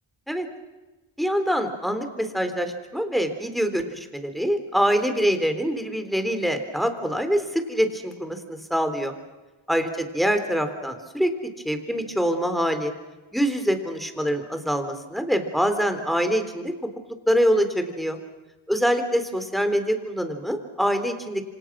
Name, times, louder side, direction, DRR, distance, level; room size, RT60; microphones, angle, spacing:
voice 1, 1.2-9.1 9.7-11.3 11.6-12.9 13.3-16.7 17.3-18.2 18.7-21.4, equal, ahead, 7 dB, 3.7 m, -24 dB
27.5 x 26.5 x 6.2 m, 1.2 s
wide cardioid pair, 45°, 49 cm